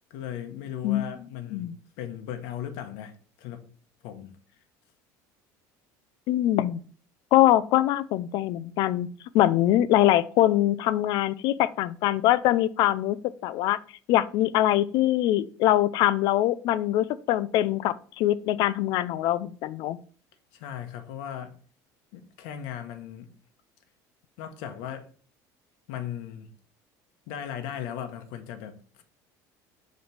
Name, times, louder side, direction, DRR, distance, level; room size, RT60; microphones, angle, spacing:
voice 1, 0.1-3.6 4.0-4.3 20.5-21.6 22.1-23.3 24.4-25.1 25.9-26.5 27.3-29.0, left 10 dB, 75° left, 1.0 m, -37 dB
voice 2, 6.3-6.8 7.3-9.1 9.3-13.2 13.4-13.8 14.1-20.0, left 14 dB, 60° left, 0.4 m, -23 dB
5.2 x 4.0 x 5.9 m
cardioid pair, 150°, 8 cm